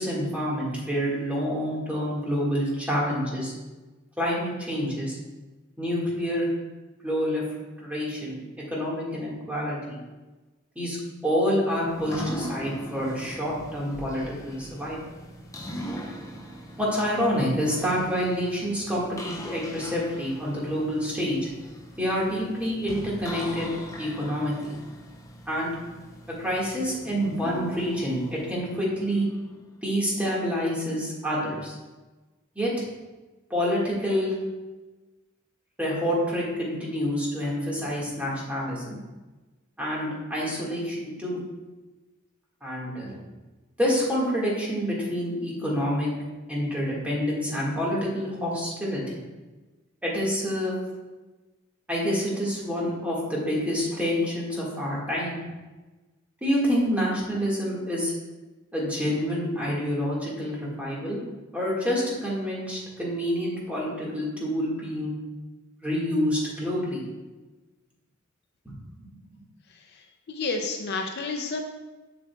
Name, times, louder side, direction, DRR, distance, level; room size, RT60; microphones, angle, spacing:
voice 1, 0.0-3.5 4.2-5.2 5.8-6.5 7.0-7.4 7.8-8.4 8.7-10.0 10.8-11.0 11.2-15.0 16.8-21.5 22.0-23.7 24.0-24.7 25.5-25.7 26.4-29.3 29.8-31.8 32.6-32.7 33.5-34.3 35.8-39.0 39.8-41.4 42.6-43.2 43.8-46.1 46.5-49.2 50.0-50.8 51.9-55.4 56.4-58.1 58.7-61.2 61.5-65.1 65.8-67.0 69.0-69.1, equal, 5° right, -5 dB, 1.7 m, -27 dB
sound 1, 11.9-29.7, equal, 15° left, 0.6 m, -40 dB
voice 2, 70.3-71.6, left 3 dB, 55° left, 4 dB, 0.5 m, -30 dB
7.2 x 6.8 x 2.3 m, 1.2 s
head